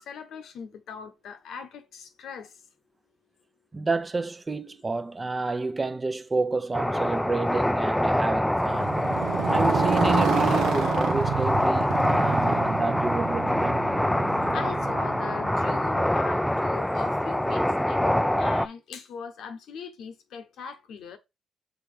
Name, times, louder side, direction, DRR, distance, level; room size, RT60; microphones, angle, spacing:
voice 1, 0.0-2.5 14.5-21.2, left 6 dB, 75° left, 1.0 m, -40 dB
voice 2, 3.7-9.0 9.5-13.9, right 3 dB, 30° right, 0.7 m, -30 dB
sound 1, 6.7-18.7, left 1 dB, 5° left, 0.4 m, -25 dB
Motorcycle, 8.6-16.6, right 8 dB, 80° right, 0.7 m, -30 dB
5.9 x 3.4 x 5.0 m
supercardioid pair, 60°, 0 cm